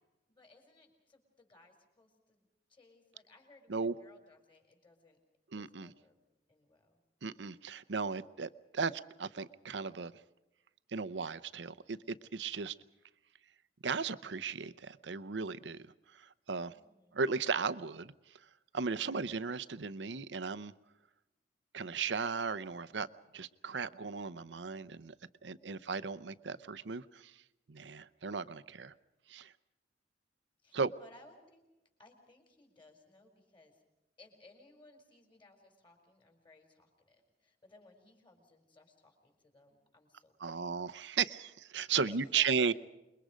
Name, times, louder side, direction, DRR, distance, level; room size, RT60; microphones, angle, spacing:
voice 1, 0.3-5.2 5.6-6.2 6.5-7.0 16.7-17.2 25.5-26.0 30.6-31.6 32.0-33.8 34.2-40.8 42.0-42.6, left 2 dB, 30° left, 4 dB, 4.9 m, -61 dB
voice 2, 5.5-5.9 7.2-10.1 10.9-12.7 13.8-15.8 16.2-16.7 17.1-18.1 18.7-20.7 21.7-23.1 23.3-25.1 25.4-27.3 27.7-28.9 29.3-29.5 30.7-30.9 40.4-42.7, right 5 dB, 80° right, 14 dB, 0.7 m, -36 dB
27.5 x 22.0 x 5.1 m, 0.97 s
head